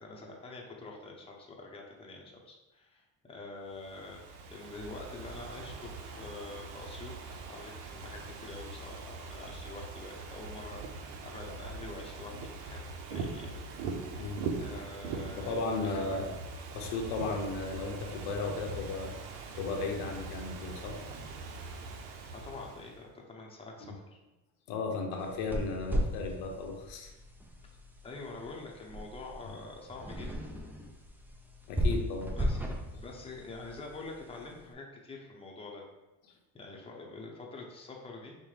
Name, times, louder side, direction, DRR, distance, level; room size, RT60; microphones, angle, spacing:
voice 1, 0.0-14.1 14.6-16.2 22.3-24.2 28.0-30.3 32.3-32.6 33.0-35.8 36.5-38.4, left 3 dB, 15° left, -1 dB, 0.7 m, -46 dB
Ocean / Fireworks, 3.7-23.0, right 4 dB, 90° right, 0.6 m, -42 dB
voice 2, 15.4-16.3 16.7-19.2 19.6-21.0 23.8-23.9 24.7-27.1 31.7-32.3, left 3 dB, 80° left, 2 dB, 0.8 m, -35 dB
sound 1, 25.2-34.6, equal, 5° right, 0.3 m, -36 dB
5.4 x 2.2 x 3.2 m, 1.0 s
cardioid pair, 105°, 41 cm